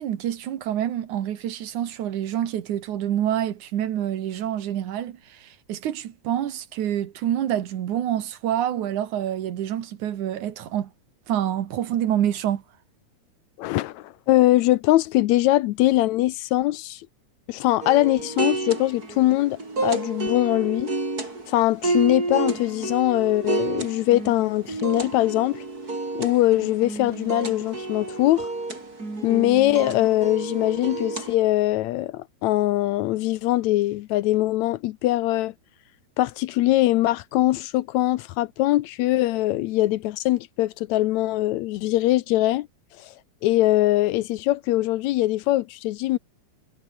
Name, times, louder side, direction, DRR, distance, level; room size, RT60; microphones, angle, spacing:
voice 1, 0.0-10.9 11.3-12.6, right 11 dB, 80° right, 3.0 m, -27 dB
voice 2, 13.6-17.0 17.5-20.9 21.5-25.6 26.2-28.5 29.2-35.5 36.2-42.7 43.0-43.1 43.4-46.2, left 16 dB, 80° left, 1.9 m, -22 dB
sound 1, 17.8-31.4, right 3 dB, 30° right, 5.2 m, -30 dB
omnidirectional pair, 3.4 m